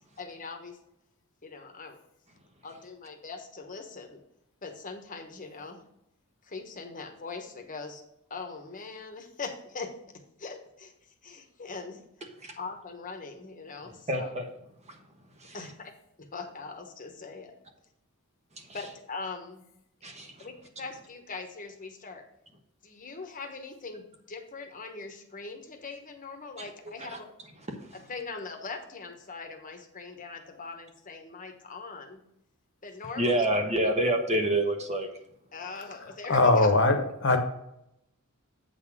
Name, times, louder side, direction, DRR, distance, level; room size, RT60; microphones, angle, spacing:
voice 1, 0.2-0.8 1.4-2.0 2.6-4.2 4.6-5.8 6.4-8.0 8.3-9.9 10.4-10.9 11.2-12.0 12.6-14.3 15.5-15.9 16.2-17.5 18.7-19.6 20.4-22.2 22.8-27.3 28.1-32.2 32.8-33.5 35.5-36.7, left 4 dB, 40° left, 4 dB, 1.2 m, -41 dB
voice 2, 13.8-14.5 14.8-15.0 15.3-15.6 18.5-18.8 20.0-20.5 26.6-26.7 27.0-27.2 27.7-28.0 33.2-35.1, right 1 dB, 30° right, 3 dB, 1.2 m, -28 dB
voice 3, 36.3-37.4, left 2 dB, 60° left, 5 dB, 1.2 m, -21 dB
8.4 x 4.0 x 6.0 m, 0.79 s
head